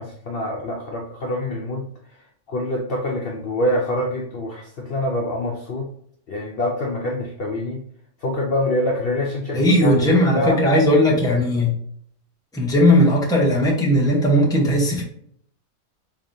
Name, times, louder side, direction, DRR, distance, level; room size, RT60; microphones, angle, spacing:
voice 1, 0.0-1.9 2.5-5.9 6.3-7.8 8.2-10.7 12.7-12.8, left 1 dB, 55° left, -1 dB, 0.7 m, -25 dB
voice 2, 9.5-11.7 12.5-15.0, equal, 5° left, -3 dB, 0.7 m, -17 dB
3.5 x 3.4 x 2.6 m, 0.67 s
omnidirectional pair, 1.4 m